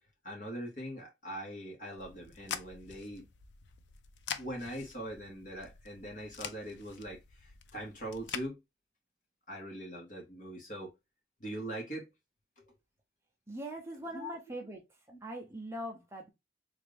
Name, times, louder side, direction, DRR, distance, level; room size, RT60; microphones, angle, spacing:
voice 1, 0.2-3.3 4.4-8.6 9.5-10.9 11.4-12.1 12.6-12.7 14.1-14.4 15.1-15.2, right 1 dB, 45° left, 1.6 m, -42 dB
sound 1, 2.0-8.5, left 7 dB, 90° left, 0.5 m, -45 dB
voice 2, 13.5-14.8 15.2-16.3, right 1 dB, 15° right, 0.6 m, -41 dB
3.5 x 2.5 x 3.3 m
head